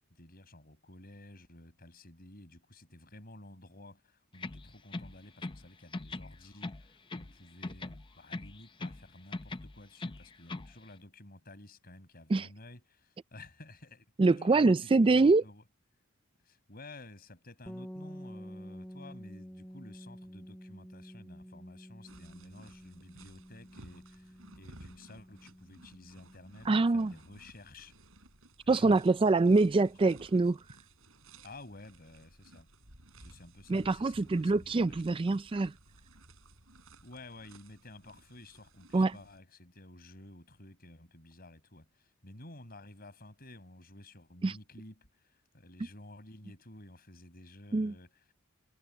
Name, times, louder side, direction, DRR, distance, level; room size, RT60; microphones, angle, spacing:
voice 1, 0.0-15.7 16.4-27.9 28.6-29.1 29.8-30.1 31.4-32.7 33.2-35.2 37.0-48.3, left 2 dB, 45° left, 5.7 m, -52 dB
sound 1, 4.3-5.7 5.9-7.4 7.6-9.0 9.3-10.7, left 2 dB, 25° left, 0.7 m, -41 dB
voice 2, 14.2-15.4 26.7-27.1 28.7-30.6 33.7-35.7 38.9-39.1 44.4-44.6 47.7-47.9, right 3 dB, 25° right, 0.3 m, -25 dB
sound 2, 17.7-27.4, equal, 5° left, 2.4 m, -50 dB
sound 3, 22.1-39.4, right 2 dB, 70° right, 7.7 m, -57 dB
head